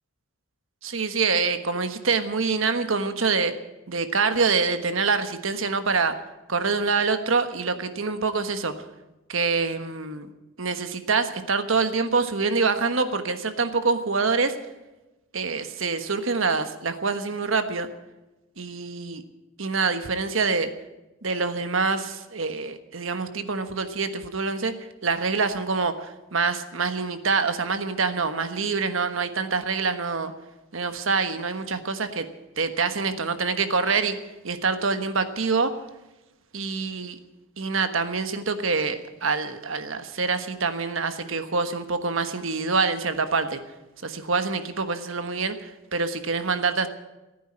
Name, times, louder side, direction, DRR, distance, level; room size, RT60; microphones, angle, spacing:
voice 1, 0.8-3.5 3.9-6.1 6.5-8.7 9.3-10.3 10.6-14.6 15.3-17.9 18.6-19.2 19.6-20.7 21.2-24.7 25.0-30.3 30.7-32.3 32.6-34.2 34.4-35.7 36.5-37.2 37.6-43.6 44.0-46.9, right 4 dB, 75° right, 9 dB, 1.3 m, -25 dB
15.5 x 9.3 x 9.6 m, 1.0 s
head